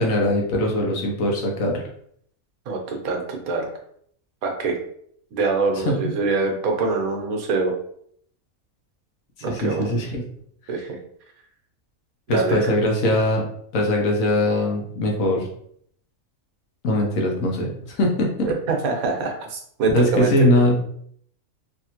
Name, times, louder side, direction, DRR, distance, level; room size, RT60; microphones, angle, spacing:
voice 1, 0.0-1.8 5.7-5.9 9.4-10.2 10.7-10.8 12.3-13.4 13.7-15.5 16.8-18.3 19.9-20.7, left 1 dB, 75° left, 0 dB, 1.2 m, -21 dB
voice 2, 2.7-3.6 4.4-4.8 5.3-7.7 9.4-9.9 10.7-11.0 12.3-12.6 18.5-20.3, right 3 dB, 80° right, 2 dB, 1.2 m, -24 dB
3.2 x 2.7 x 2.8 m, 0.65 s
omnidirectional pair, 1.5 m